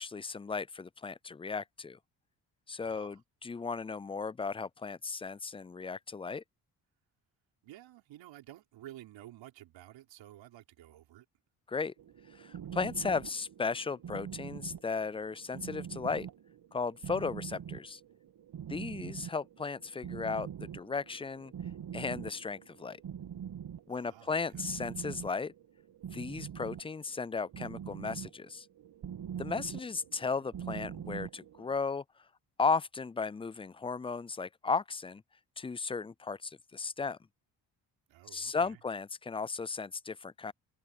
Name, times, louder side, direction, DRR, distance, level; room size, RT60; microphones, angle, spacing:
voice 1, 0.0-2.0 2.7-6.4 11.7-11.9 12.3-16.3 16.7-18.0 18.7-21.5 21.9-23.0 23.9-25.5 26.1-28.7 29.4-32.0 32.6-35.2 35.6-37.2 38.3-40.5, left 4 dB, 15° left, 0.3 m, -35 dB
voice 2, 2.8-3.2 7.6-11.2 23.9-24.7 38.1-38.8, right 14 dB, 80° right, 4.7 m, -52 dB
sound 1, 12.0-31.8, right 9 dB, 60° right, 2.6 m, -44 dB
supercardioid pair, 50°, 44 cm